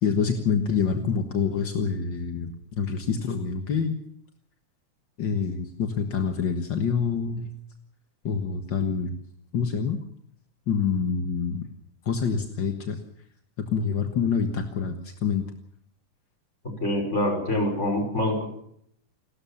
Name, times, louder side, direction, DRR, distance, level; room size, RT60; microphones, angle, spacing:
voice 1, 0.0-4.0 5.2-7.4 8.2-9.2 9.5-10.0 10.7-11.6 12.0-13.0 13.7-15.5, left 6 dB, 50° left, 5 dB, 1.6 m, -26 dB
voice 2, 16.8-18.4, left 1 dB, 20° left, 4 dB, 5.7 m, -25 dB
29.0 x 13.0 x 7.2 m, 0.69 s
omnidirectional pair, 3.7 m